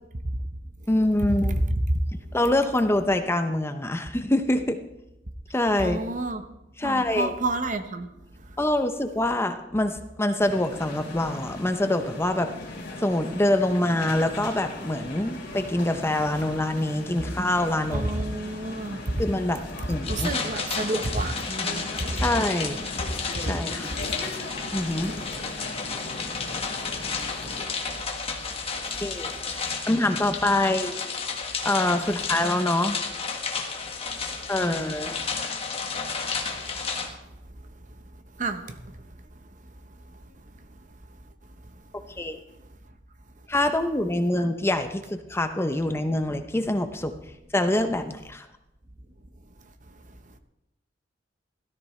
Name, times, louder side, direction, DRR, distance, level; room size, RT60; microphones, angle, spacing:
voice 1, 0.9-1.6 2.3-4.8 5.5-6.0 6.8-7.3 8.6-12.5 13.0-18.1 18.4-18.5 19.2-19.6 19.9-20.3 22.2-22.8 23.4-23.9 24.7-25.2 29.0-29.3 29.9-31.0 31.6-33.0 34.5-35.1 41.9-42.4 43.5-47.1 47.5-48.5, left 1 dB, 15° left, 0.7 m, -25 dB
voice 2, 5.8-6.4 6.8-8.1 17.9-19.0 20.1-22.1 28.9-29.0 38.4-38.9, right 2 dB, 45° right, 1.0 m, -30 dB
sound 1, 10.4-27.7, left 2 dB, 60° left, 3.3 m, -38 dB
sound 2, 20.0-37.1, left 5 dB, 35° left, 1.6 m, -32 dB
16.5 x 13.5 x 3.2 m
head